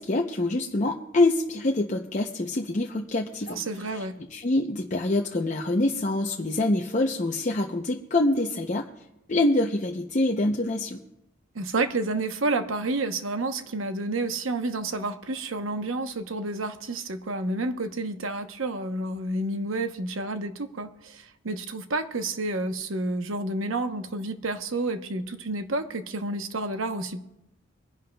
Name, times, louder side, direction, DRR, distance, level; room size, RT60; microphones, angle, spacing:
voice 1, 0.0-3.6 3.9-4.0 4.3-8.9 9.3-11.0, left 2 dB, 40° left, 1 dB, 0.6 m, -25 dB
voice 2, 3.5-4.1 11.5-27.2, right 2 dB, 85° right, 8 dB, 0.9 m, -30 dB
25.0 x 10.5 x 2.3 m, 0.89 s
head